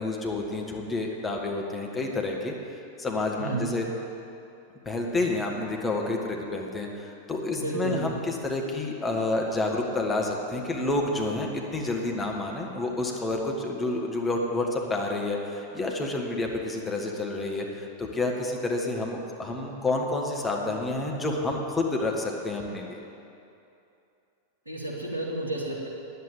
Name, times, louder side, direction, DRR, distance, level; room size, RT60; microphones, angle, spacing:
voice 1, 0.0-2.5 3.0-3.9 4.8-23.0, left 2 dB, 15° left, 0 dB, 1.6 m, -29 dB
voice 2, 7.5-8.0 24.7-25.9, right 2 dB, 85° right, -3 dB, 2.2 m, -31 dB
10.0 x 8.0 x 8.7 m, 2.7 s
figure-of-eight pair, 90°, 0 cm